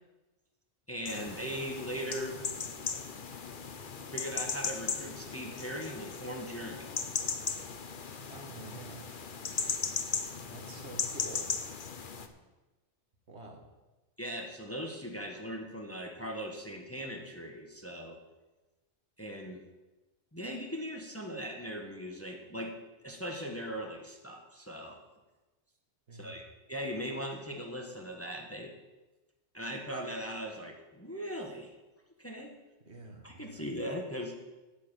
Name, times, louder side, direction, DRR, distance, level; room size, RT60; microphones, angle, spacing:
voice 1, 0.9-2.4 4.1-6.9 14.2-18.2 19.2-19.6 20.3-22.7 23.0-25.0 26.1-26.4 26.7-28.7 29.5-31.7 32.2-32.5 33.2-34.4, equal, 10° left, 1 dB, 1.4 m, -39 dB
sound 1, 1.1-12.3, left 5 dB, 50° left, 1.0 m, -37 dB
voice 2, 8.3-9.2 10.5-11.5 13.3-13.6 26.1-26.4 32.8-33.7, right 2 dB, 65° right, 2 dB, 2.1 m, -48 dB
8.6 x 7.5 x 9.0 m, 1.1 s
omnidirectional pair, 1.2 m